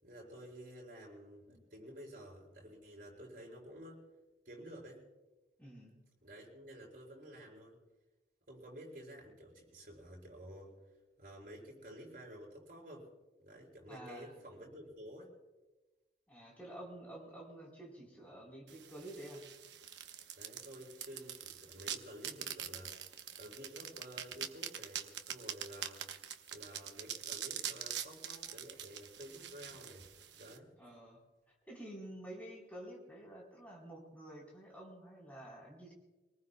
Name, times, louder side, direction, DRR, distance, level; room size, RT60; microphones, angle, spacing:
voice 1, 0.0-4.0 4.4-5.0 6.2-7.8 8.5-10.8 11.2-13.1 13.4-15.3 20.4-22.9 23.4-26.0 26.5-30.7, equal, 50° right, -2 dB, 6.0 m, -51 dB
voice 2, 5.6-6.0 13.9-14.3 16.3-19.4 30.8-31.2 31.7-35.9, right 1 dB, 10° left, -3 dB, 3.8 m, -50 dB
sound 1, 18.7-30.6, right 9 dB, 85° right, 0.9 m, -44 dB
25.5 x 19.0 x 2.2 m, 1.1 s
head